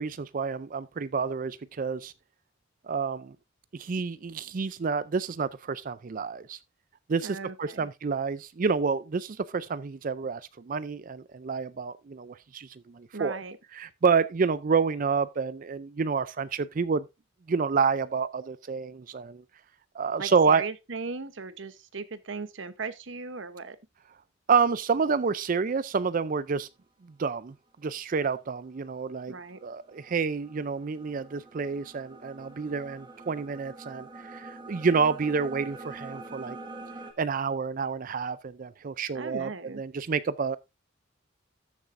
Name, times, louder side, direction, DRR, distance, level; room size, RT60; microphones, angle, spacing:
voice 1, 0.0-2.1 2.8-3.4 3.7-6.6 7.1-13.4 13.7-17.1 17.5-19.4 19.9-20.6 24.5-26.7 27.2-27.5 27.8-29.4 29.6-36.6 37.2-39.5 39.8-40.6, right 5 dB, 45° right, 0.4 m, -28 dB
voice 2, 7.2-7.9 13.1-13.6 20.2-23.8 29.3-29.6 39.1-39.8, right 4 dB, 65° right, 0.9 m, -38 dB
sound 1, 28.5-37.1, right 2 dB, 25° right, 1.8 m, -45 dB
14.0 x 7.3 x 2.6 m
head